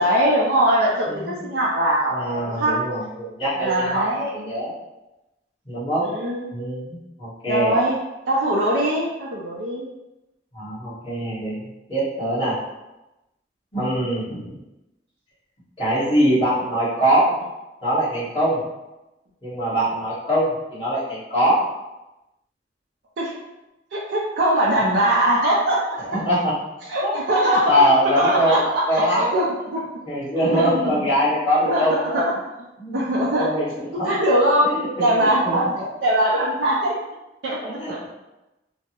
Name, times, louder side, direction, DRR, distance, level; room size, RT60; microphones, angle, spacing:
voice 1, 0.0-2.7 3.6-4.3 6.0-6.5 7.5-8.0 8.3-9.9 23.2-23.3 23.9-26.2 26.9-27.7 28.2-28.6 28.9-29.5 29.7-29.8 30.5-30.7 31.7-31.8 32.1-32.2 32.9-33.5 34.0-34.6 35.0-36.9 37.4-37.6 37.9-38.0, right 1 dB, 85° right, -5 dB, 0.5 m, -21 dB
voice 2, 1.1-1.4 2.1-4.7 5.6-6.1 6.5-7.8 10.5-12.6 13.7-14.5 15.8-17.3 17.8-18.6 19.4-21.7 26.1-26.6 27.0-27.1 27.7-29.3 30.0-32.2 32.8-34.1 34.6-35.6 37.6-38.1, equal, 30° left, -11 dB, 1.4 m, -23 dB
3.3 x 2.0 x 2.9 m, 0.97 s
head